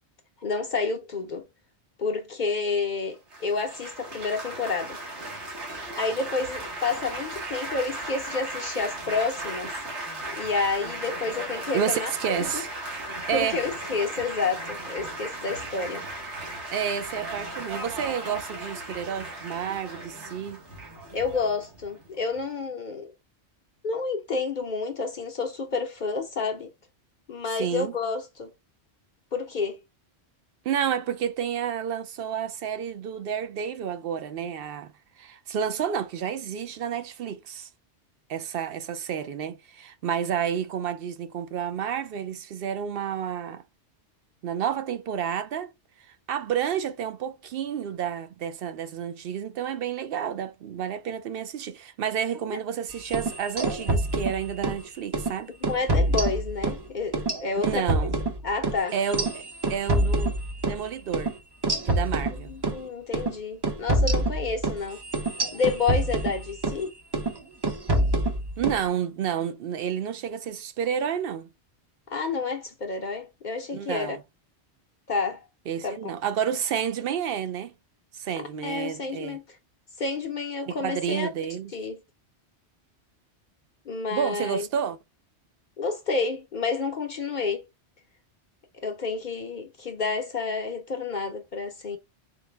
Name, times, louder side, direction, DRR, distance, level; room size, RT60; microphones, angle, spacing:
voice 1, 0.4-1.5 2.0-5.0 5.9-9.7 10.3-12.6 13.3-16.0 21.1-23.1 23.8-26.7 27.3-28.5 29.3-29.8 52.5-52.6 55.7-58.1 58.4-59.0 62.5-65.0 65.5-66.9 72.1-74.2 75.1-75.4 75.8-76.1 78.5-79.6 80.0-81.3 81.7-82.0 83.9-84.7 85.8-87.6 88.8-92.0, left 4 dB, 55° left, 0.6 m, -29 dB
Laughter / Applause / Chatter, 3.3-22.4, right 1 dB, 90° right, 1.6 m, -36 dB
voice 2, 11.7-12.7 13.3-13.6 16.7-20.6 27.5-27.9 30.6-34.9 35.2-37.7 38.3-43.6 44.4-45.7 46.3-55.5 57.6-58.2 58.9-59.4 59.7-60.3 60.7-61.3 61.8-62.5 68.6-71.5 73.7-74.2 75.7-77.7 78.1-79.4 80.6-81.7 84.1-85.0, right 8 dB, 65° right, 0.7 m, -30 dB
sound 1, 53.0-54.8 55.1-55.3 55.6-56.8 57.1-60.8 61.1-61.3 61.6-62.8 63.1-63.3 63.6-66.8 67.1-67.4 67.6-68.8, right 2 dB, 30° right, 0.6 m, -26 dB
4.4 x 2.1 x 3.2 m
omnidirectional pair, 1.1 m